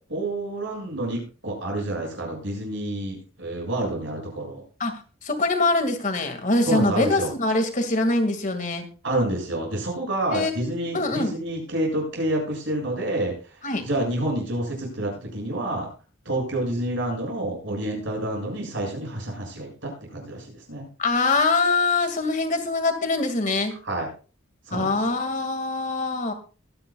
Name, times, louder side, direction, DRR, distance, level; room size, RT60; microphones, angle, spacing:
voice 1, 0.1-4.6 6.7-7.3 9.0-13.3 13.8-15.9 16.3-20.9 23.9-24.1 24.7-25.0, right 1 dB, 65° right, 0 dB, 7.3 m, -28 dB
voice 2, 5.2-8.9 10.3-10.7 10.9-11.3 13.6-13.8 21.0-23.7 24.7-26.3, left 3 dB, 40° left, 6 dB, 2.2 m, -23 dB
22.5 x 10.5 x 2.4 m, 0.36 s
head